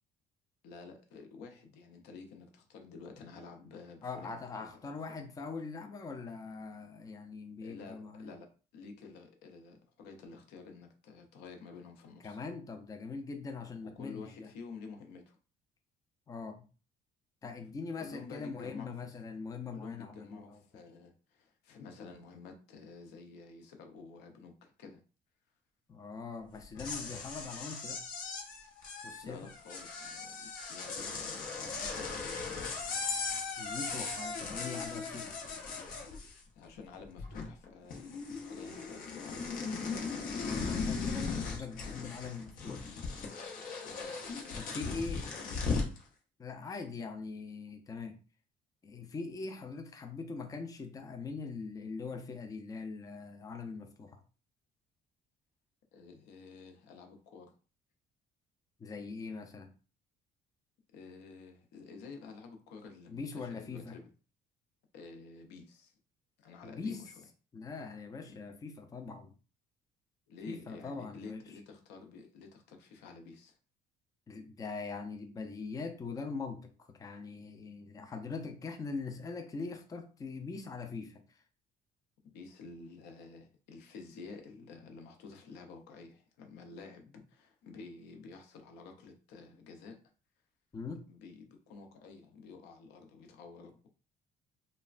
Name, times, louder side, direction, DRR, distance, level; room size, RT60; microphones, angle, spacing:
voice 1, 0.6-5.2 7.6-12.4 13.8-15.4 17.6-17.7 18.0-19.0 19.7-25.0 29.2-32.4 36.5-40.9 41.3-41.5 41.8-42.0 43.8-45.9 49.5-49.7 55.9-57.5 60.9-64.1 64.9-65.9 66.4-67.1 68.2-68.4 70.3-73.6 82.3-90.0 91.1-93.9, left 4 dB, 85° left, 5 dB, 0.6 m, -51 dB
voice 2, 4.0-8.3 12.2-14.5 16.3-16.6 17.4-20.8 25.9-28.0 29.0-29.5 33.6-35.3 40.4-43.0 44.6-45.2 46.4-48.2 48.8-54.2 58.8-59.7 63.1-64.0 66.6-67.1 67.5-69.3 70.5-71.4 74.3-76.7 77.0-81.2 90.7-91.1, left 4 dB, 20° left, 5 dB, 0.4 m, -42 dB
sound 1, 26.6-36.6 36.9-37.7 37.9-46.0, left 4 dB, 55° left, 0.7 m, -38 dB
3.1 x 2.1 x 2.4 m, 0.36 s
cardioid pair, 110°, 17 cm